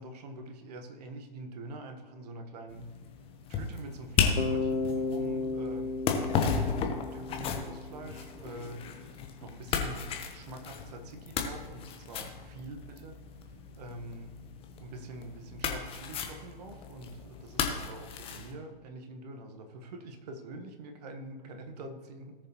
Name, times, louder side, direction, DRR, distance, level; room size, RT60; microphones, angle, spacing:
voice 1, 0.0-2.8 3.5-6.1 6.4-8.8 9.4-13.2 13.8-14.3 14.8-22.3, right 2 dB, 45° right, 5 dB, 1.4 m, -45 dB
Flesh Slice and Slash, 2.7-18.5, left 6 dB, 20° left, 1.0 m, -35 dB
Bass guitar, 4.4-8.3, left 3 dB, 70° left, 1.1 m, -34 dB
18.0 x 6.7 x 3.0 m, 1.4 s
figure-of-eight pair, 115°, 29 cm